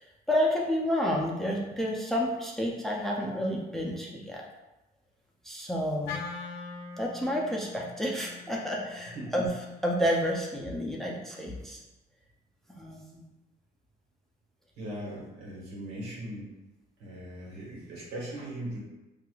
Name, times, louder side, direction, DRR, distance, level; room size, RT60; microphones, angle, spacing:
voice 1, 0.3-4.4 5.4-6.2 7.0-9.5 9.8-11.8 12.8-13.2, equal, ahead, -2 dB, 0.5 m, -30 dB
Wind instrument woodwind instrument, 6.0-10.3, left 4 dB, 70° left, 0.4 m, -43 dB
voice 2, 14.7-16.5 17.0-18.8, right 1 dB, 75° right, -4 dB, 1.3 m, -39 dB
4.6 x 2.4 x 2.3 m, 1.0 s
cardioid pair, 110°, 17 cm